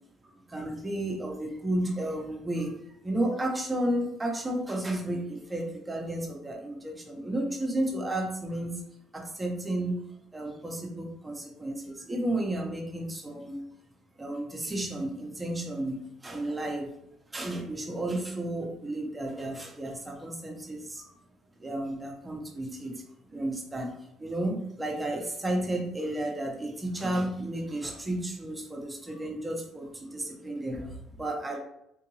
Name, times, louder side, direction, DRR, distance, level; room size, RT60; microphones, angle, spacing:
voice 1, 0.2-8.8 9.1-13.6 14.2-16.9 17.3-21.1 21.6-31.6, right 1 dB, 15° right, 1 dB, 0.8 m, -33 dB
3.7 x 2.5 x 3.0 m, 0.79 s
cardioid pair, 110°, 0 cm